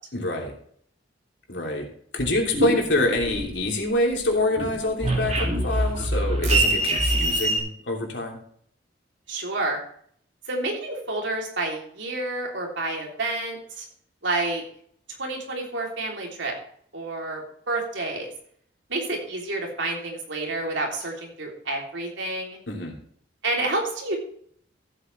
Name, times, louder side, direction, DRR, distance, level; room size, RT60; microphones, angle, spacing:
voice 1, 0.1-0.5 1.5-1.9 2.1-8.4 22.7-22.9, left 1 dB, 75° left, 0 dB, 3.0 m, -26 dB
sound 1, 2.2-3.9 4.2-7.6, right 1 dB, 40° right, 2.4 m, -24 dB
voice 2, 9.3-9.8 10.5-13.8 14.2-14.6 15.2-16.5 16.9-18.3 18.9-22.6 23.4-24.2, right 2 dB, 90° right, 0 dB, 3.4 m, -29 dB
14.5 x 8.2 x 3.4 m, 0.62 s
head